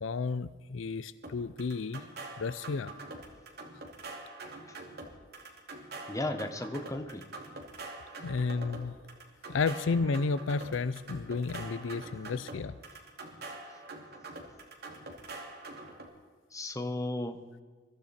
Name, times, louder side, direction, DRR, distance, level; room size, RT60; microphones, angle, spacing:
voice 1, 0.0-2.0 2.4-2.9 8.2-8.9 9.5-12.8, left 4 dB, 70° left, 15 dB, 0.5 m, -32 dB
sound 1, 1.2-16.1, right 2 dB, 55° right, 2.6 m, -45 dB
voice 2, 6.1-7.2 16.5-17.4, left 2 dB, 15° left, 7 dB, 1.1 m, -35 dB
22.5 x 13.5 x 4.3 m, 1.5 s
head